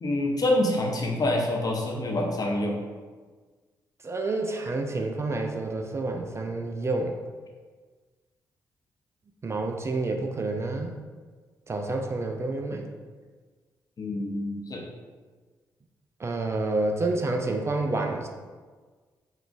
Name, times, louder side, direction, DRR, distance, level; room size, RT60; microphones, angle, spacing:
voice 1, 0.0-2.8 14.0-14.8, left 1 dB, 40° left, 0 dB, 0.6 m, -26 dB
voice 2, 4.0-7.2 9.4-11.0 11.7-12.8 16.2-18.3, right 2 dB, 30° right, 3 dB, 0.3 m, -29 dB
3.6 x 2.3 x 2.3 m, 1.4 s
hypercardioid pair, 40°, 10 cm